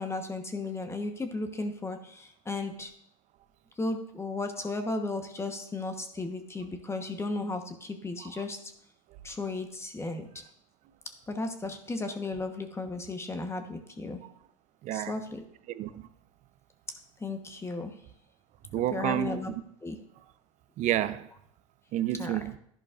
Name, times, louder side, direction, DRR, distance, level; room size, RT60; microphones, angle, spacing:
voice 1, 0.0-2.9 3.8-8.6 9.2-10.3 11.3-14.2 14.9-15.4 17.2-17.9 18.9-19.5 19.8-20.0 22.2-22.3, left 2 dB, 15° left, 1.1 m, -35 dB
voice 2, 14.8-15.1 15.7-16.0 18.7-19.4 20.8-21.3 21.9-22.6, right 12 dB, 45° right, 0.6 m, -30 dB
11.0 x 10.5 x 2.5 m
hypercardioid pair, 95°, 18 cm